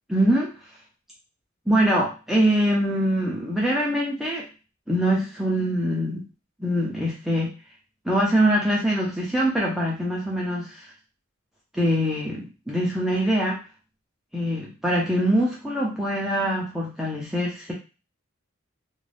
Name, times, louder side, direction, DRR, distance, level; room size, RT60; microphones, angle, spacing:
voice 1, 0.1-0.5 1.7-4.4 4.9-6.2 6.6-7.5 8.0-10.9 11.7-13.6 14.3-17.7, equal, ahead, -4 dB, 0.5 m, -23 dB
2.6 x 2.2 x 3.2 m, 0.32 s
head